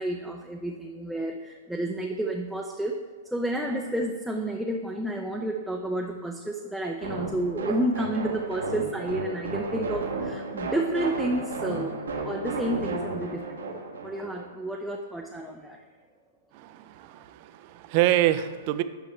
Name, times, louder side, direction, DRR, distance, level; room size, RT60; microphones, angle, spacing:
voice 1, 0.0-3.0 3.2-15.8, right 1 dB, ahead, 0 dB, 0.6 m, -31 dB
sound 1, 7.0-14.5, right 3 dB, 85° right, 1.4 m, -33 dB
voice 2, 16.5-18.8, right 14 dB, 45° right, 12 dB, 0.5 m, -26 dB
9.1 x 5.7 x 3.2 m, 1.5 s
hypercardioid pair, 120°, 0 cm